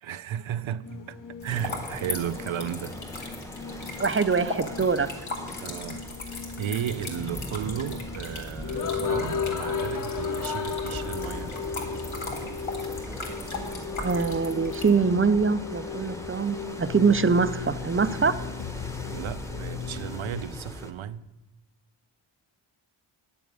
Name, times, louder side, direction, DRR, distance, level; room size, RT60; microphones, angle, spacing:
voice 1, 0.0-3.0 3.7-3.8 5.6-6.0 6.6-11.6 19.1-21.3, right 10 dB, 70° right, 0.6 m, -34 dB
sound 1, 0.8-20.4, left 6 dB, 40° left, 0.7 m, -36 dB
sound 2, 1.4-14.9, left 3 dB, 70° left, 2.2 m, -39 dB
sound 3, 1.5-20.9, equal, 5° left, 0.9 m, -40 dB
voice 2, 4.0-5.1 14.0-18.4, right 5 dB, 30° right, 0.4 m, -23 dB
9.8 x 7.0 x 8.6 m
wide cardioid pair, 130°, 49 cm